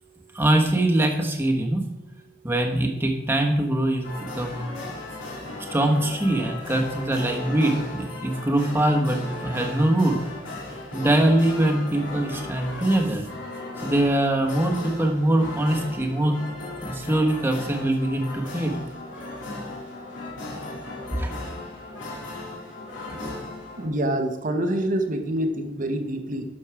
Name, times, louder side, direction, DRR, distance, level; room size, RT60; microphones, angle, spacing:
voice 1, 0.3-1.8 2.4-4.1 4.4-4.7 5.7-10.2 10.9-13.2 13.8-16.4 16.8-18.7 21.1-21.3 23.2-23.3, right 1 dB, 10° right, 2 dB, 1.3 m, -23 dB
sound 1, 4.0-23.9, left 2 dB, 75° left, 3.0 m, -36 dB
voice 2, 23.8-26.5, right 1 dB, 45° right, 6 dB, 1.0 m, -26 dB
12.0 x 6.4 x 4.8 m, 0.93 s
head